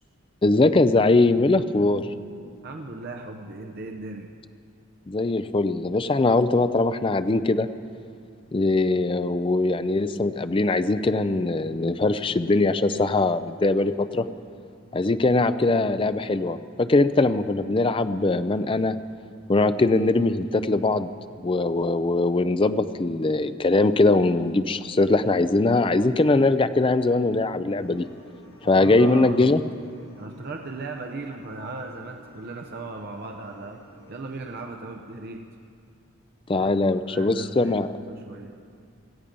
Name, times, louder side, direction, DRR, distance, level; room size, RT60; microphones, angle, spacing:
voice 1, 0.4-2.1 5.1-7.7 8.5-14.3 14.9-19.0 19.5-21.1 21.4-28.1 28.6-29.6 36.5-37.9, left 2 dB, 25° left, 11 dB, 0.4 m, -21 dB
voice 2, 2.6-4.3 28.6-29.6 30.2-33.8 34.1-35.5 36.6-36.8 37.0-38.6, right 3 dB, 50° right, 3 dB, 0.7 m, -37 dB
sound 1, 27.8-34.7, right 1 dB, 55° left, 5.3 m, -51 dB
17.0 x 14.5 x 5.3 m, 2.3 s
head